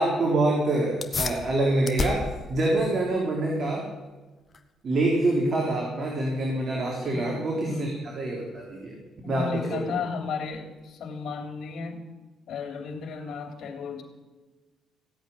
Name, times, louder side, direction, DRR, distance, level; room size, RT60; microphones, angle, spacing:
voice 1, 0.0-3.9 4.8-9.0 9.3-10.0, right 2 dB, 45° right, -1 dB, 3.6 m, -26 dB
sound 1, 1.0-10.9, left 4 dB, 35° left, 1.4 m, -38 dB
voice 2, 7.1-7.9 9.2-12.0 12.5-14.0, left 5 dB, 70° left, 5 dB, 3.3 m, -34 dB
17.0 x 8.2 x 10.0 m, 1.2 s
cardioid pair, 95°, 0 cm